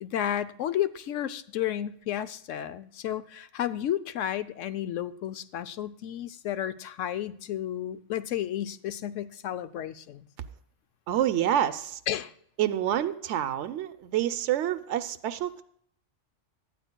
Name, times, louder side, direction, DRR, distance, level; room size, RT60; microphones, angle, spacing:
voice 1, 0.0-10.2 12.1-12.3, left 11 dB, 85° left, 12 dB, 1.0 m, -32 dB
voice 2, 11.1-12.0 12.6-15.6, right 11 dB, 75° right, 10 dB, 0.9 m, -27 dB
18.0 x 12.0 x 2.2 m, 0.65 s
omnidirectional pair, 1.3 m